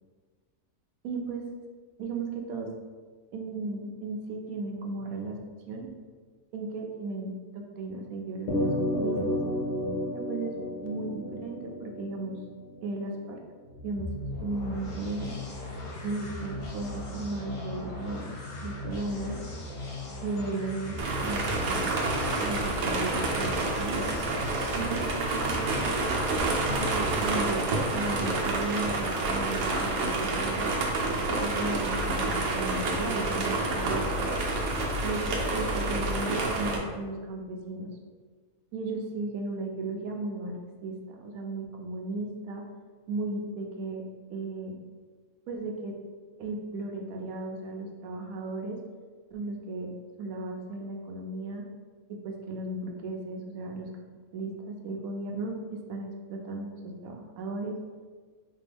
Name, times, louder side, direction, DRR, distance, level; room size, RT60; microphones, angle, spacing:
voice 1, 1.0-1.5 2.0-2.7 3.3-5.4 5.7-5.9 6.5-9.4 10.1-10.5 10.8-12.4 12.8-13.4 13.8-14.1 14.4-15.3 16.0-18.3 18.6-19.4 20.2-21.9 22.4-24.1 24.7-26.0 26.7-30.8 31.4-34.4 35.0-37.9 38.7-40.6 40.8-42.6 43.1-44.0 44.3-44.8 45.5-45.9 46.4-48.8 49.3-49.9 50.2-51.6 52.1-53.9 54.3-57.8, right 3 dB, 70° right, 1 dB, 0.9 m, -35 dB
sound 1, 8.5-13.1, left 1 dB, 55° left, 0.5 m, -31 dB
sound 2, 13.6-27.4, left 2 dB, 70° left, 1.3 m, -38 dB
sound 3, 21.0-36.8, right 2 dB, 85° right, 1.2 m, -28 dB
4.2 x 2.2 x 3.4 m, 1.5 s
omnidirectional pair, 1.7 m